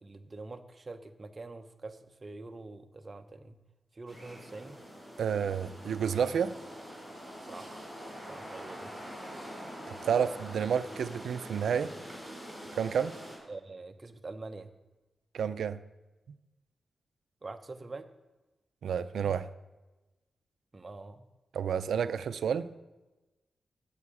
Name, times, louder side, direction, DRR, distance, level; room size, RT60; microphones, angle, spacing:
voice 1, 0.0-3.6 3.9-4.8 7.4-7.8 8.3-8.9 10.0-10.1 13.5-14.7 17.4-18.0 20.7-21.3, right 3 dB, 25° right, 8 dB, 0.7 m, -45 dB
sound 1, 4.1-13.4, equal, 10° left, 4.6 m, -45 dB
voice 2, 5.2-6.6 10.0-11.9 12.7-13.1 15.3-15.8 18.8-19.5 21.5-22.7, right 7 dB, 90° right, 13 dB, 0.5 m, -30 dB
12.5 x 4.6 x 8.4 m, 1.1 s
wide cardioid pair, 160°, 0 cm